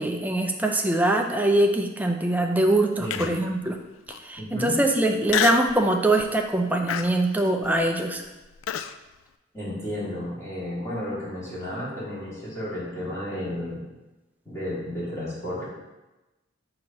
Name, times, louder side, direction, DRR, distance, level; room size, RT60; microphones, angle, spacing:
voice 1, 0.0-3.8 4.2-8.2, right 1 dB, 10° right, 2 dB, 0.5 m, -23 dB
voice 2, 3.0-3.3 4.4-4.7 9.5-13.8 14.5-15.6, left 1 dB, 15° left, -10 dB, 2.0 m, -32 dB
Human voice, 3.1-3.5 4.1-4.2 5.3-5.8 6.2-6.5 6.9-8.9, left 9 dB, 90° left, 0.3 m, -28 dB
6.2 x 2.9 x 5.3 m, 1.1 s
head